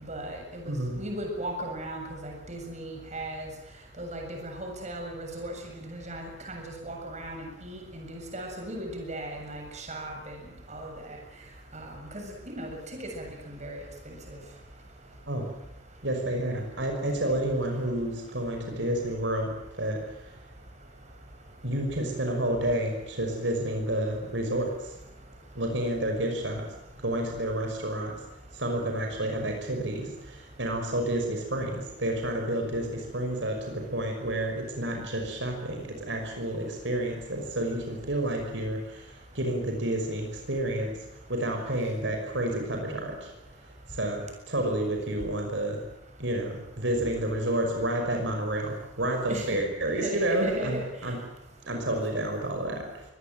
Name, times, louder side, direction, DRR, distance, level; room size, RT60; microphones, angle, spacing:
voice 1, 0.1-3.5 4.0-10.4 10.7-11.2 11.7-14.4 17.2-17.4 49.3-50.8, right 1 dB, 40° right, 3 dB, 7.4 m, -37 dB
voice 2, 0.7-1.0 15.3-15.5 16.0-20.0 21.6-24.7 25.6-26.6 27.0-28.2 28.5-40.9 41.3-43.3 43.9-45.8 46.2-50.8 51.0-51.2 51.7-53.0, right 1 dB, 75° right, 3 dB, 5.8 m, -30 dB
24.0 x 19.5 x 9.1 m, 0.86 s
head